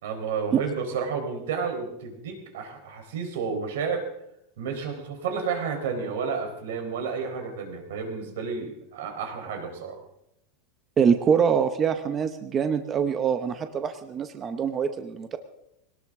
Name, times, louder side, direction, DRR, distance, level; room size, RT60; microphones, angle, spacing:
voice 1, 0.0-4.0 4.6-10.0, right 5 dB, 85° right, 4 dB, 3.9 m, -31 dB
voice 2, 11.0-15.4, right 7 dB, 20° right, 8 dB, 0.7 m, -24 dB
21.0 x 18.5 x 3.6 m, 0.80 s
supercardioid pair, 175°, 0 cm